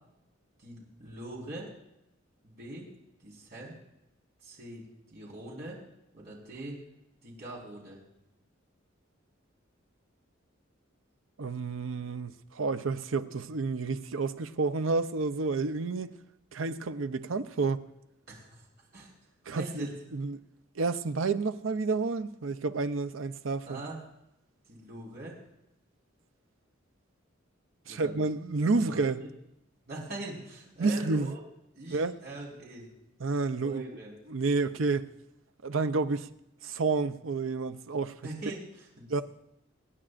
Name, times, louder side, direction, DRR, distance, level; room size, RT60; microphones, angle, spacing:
voice 1, 0.6-1.7 2.4-2.9 3.2-3.7 4.4-4.8 5.1-5.8 6.1-6.8 7.2-8.0 18.3-18.6 18.9-19.1 19.5-19.9 23.6-24.0 24.7-25.4 27.9-28.2 28.7-29.3 29.9-31.4 31.7-32.9 33.5-34.1 38.2-39.2, right 1 dB, 55° right, 4.5 m, -42 dB
voice 2, 11.4-16.1 16.5-17.8 19.5-20.4 20.8-23.8 27.9-29.2 30.8-31.3 31.9-32.2 33.2-33.9 34.3-35.1 35.6-36.3 36.6-38.1 39.1-39.2, right 3 dB, 80° right, 0.6 m, -30 dB
26.5 x 9.8 x 2.5 m
head